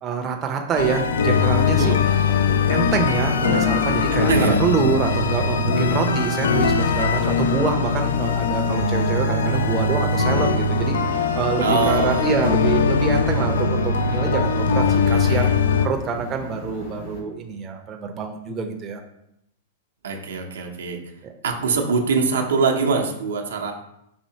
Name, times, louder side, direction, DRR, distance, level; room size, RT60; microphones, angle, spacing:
voice 1, 0.0-1.9 2.7-4.3 4.6-11.0 11.4-15.5 15.8-19.0 21.2-21.3, right 5 dB, 25° right, 2 dB, 0.5 m, -26 dB
sound 1, 0.8-15.9, left 4 dB, 85° left, 0.3 m, -21 dB
sound 2, 1.4-17.2, left 1 dB, 65° left, 1.4 m, -37 dB
voice 2, 4.1-4.6 11.6-12.5 14.9-15.6 20.0-21.0 21.4-23.7, right 5 dB, 85° right, 2 dB, 0.6 m, -23 dB
4.2 x 2.7 x 2.7 m, 0.80 s
hypercardioid pair, 120°, 0 cm